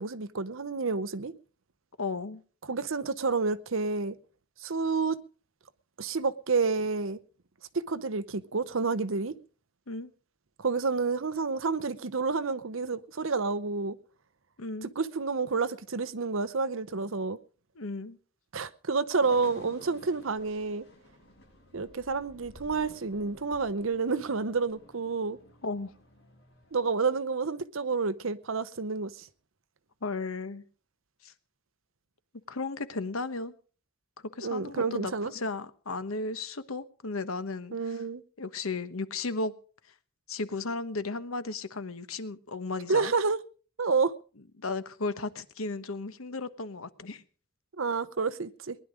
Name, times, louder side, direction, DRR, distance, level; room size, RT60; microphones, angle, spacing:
voice 1, 0.0-1.3 2.7-4.1 4.6-5.2 6.0-7.2 7.7-9.3 10.6-14.0 14.8-17.4 18.5-20.9 21.7-25.4 26.7-29.3 34.4-35.3 37.7-38.2 42.9-43.4 43.8-44.1 47.8-48.8, right 4 dB, 75° right, 0.8 m, -29 dB
voice 2, 2.0-2.4 9.9-10.1 14.6-14.9 17.8-18.2 25.6-25.9 30.0-30.6 31.2-31.3 32.5-33.5 34.4-38.0 38.4-39.5 40.3-43.1 44.6-47.2, left 3 dB, 85° left, 1.2 m, -35 dB
sound 1, 19.2-26.8, equal, 50° left, 7.3 m, -54 dB
19.5 x 11.0 x 5.0 m
head